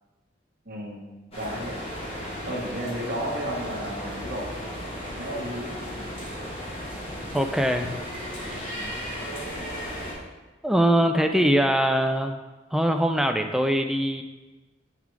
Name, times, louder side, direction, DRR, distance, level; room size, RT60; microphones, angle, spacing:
voice 1, 0.7-1.1 1.3-1.7 2.5-4.6 5.2-5.8, equal, 50° right, -2 dB, 1.3 m, -33 dB
sound 1, 1.3-10.1, equal, 30° left, 1.7 m, -35 dB
voice 2, 7.3-8.0 10.6-12.4 12.7-14.2, equal, ahead, 5 dB, 0.4 m, -22 dB
8.8 x 4.0 x 4.6 m, 1.2 s
head